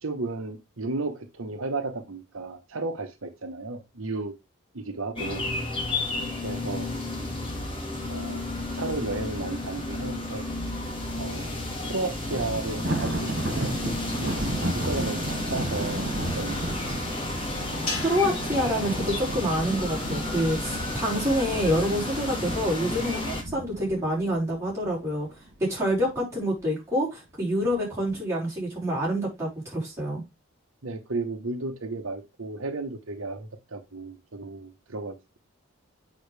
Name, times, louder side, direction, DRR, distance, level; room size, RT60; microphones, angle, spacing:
voice 1, 0.0-4.3 4.7-5.4 6.4-6.9 8.0-10.4 11.1-13.7 14.2-16.0 16.3-16.6 30.8-35.4, right 3 dB, 75° right, 1.1 m, -34 dB
sound 1, 5.2-23.4, left 2 dB, 25° left, 2.2 m, -32 dB
Thunder, 12.2-25.5 25.9-26.2 26.6-26.7 27.6-28.2, right 1 dB, 50° right, 2.3 m, -34 dB
sound 2, 17.9-20.3, left 3 dB, 85° left, 2.8 m, -38 dB
voice 2, 17.9-25.3 25.6-30.2, equal, 15° right, 5.2 m, -27 dB
8.6 x 5.8 x 3.3 m
head